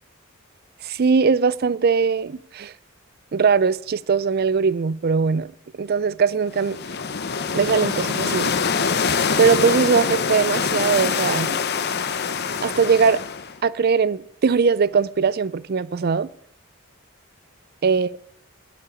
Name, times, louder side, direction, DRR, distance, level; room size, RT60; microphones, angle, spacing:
voice 1, 0.8-2.7 3.3-5.5 5.8-6.8 7.5-8.5 9.4-11.6 12.6-13.2 13.6-16.3 17.8-18.3, right 5 dB, 45° right, 0.4 m, -20 dB
sound 1, 6.5-13.6, left 5 dB, 50° left, 0.8 m, -24 dB
12.0 x 8.4 x 8.4 m
head